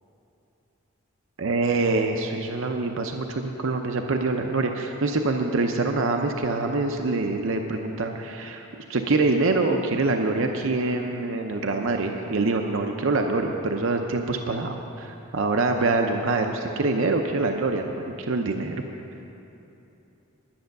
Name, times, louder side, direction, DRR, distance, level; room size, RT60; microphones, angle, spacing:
voice 1, 1.4-18.8, right 3 dB, 60° right, 4 dB, 0.6 m, -25 dB
10.5 x 9.6 x 6.6 m, 2.9 s
head